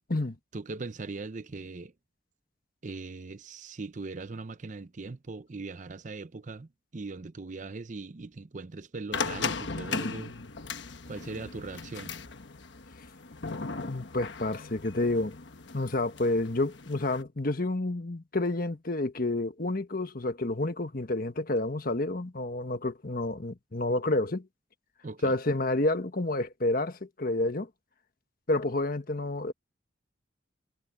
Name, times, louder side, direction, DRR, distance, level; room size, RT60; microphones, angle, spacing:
voice 1, 0.5-1.9 2.8-10.3 11.1-12.1 25.0-25.3, right 3 dB, 40° right, 0.6 m, -40 dB
Door Opening, 9.1-17.2, left 4 dB, 70° left, 1.2 m, -37 dB
voice 2, 13.8-15.3 15.7-24.5 25.2-27.7 28.5-29.5, left 2 dB, 50° left, 1.4 m, -29 dB
head